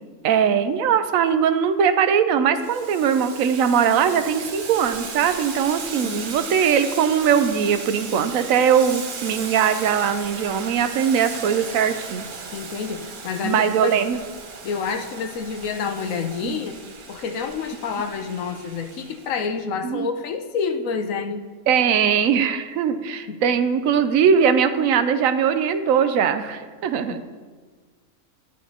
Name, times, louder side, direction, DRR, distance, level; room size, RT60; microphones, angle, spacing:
voice 1, 0.2-12.3 13.4-14.2 16.4-16.6 19.8-20.1 21.7-27.2, right 7 dB, 75° right, 10 dB, 1.0 m, -20 dB
Boiling, 2.6-19.4, right 5 dB, 45° right, 0.7 m, -36 dB
voice 2, 12.5-14.0 14.6-16.8 17.1-21.4 23.3-23.4 27.1-27.2, left 5 dB, 75° left, 7 dB, 1.1 m, -28 dB
11.0 x 9.4 x 2.8 m, 1.5 s
omnidirectional pair, 1.4 m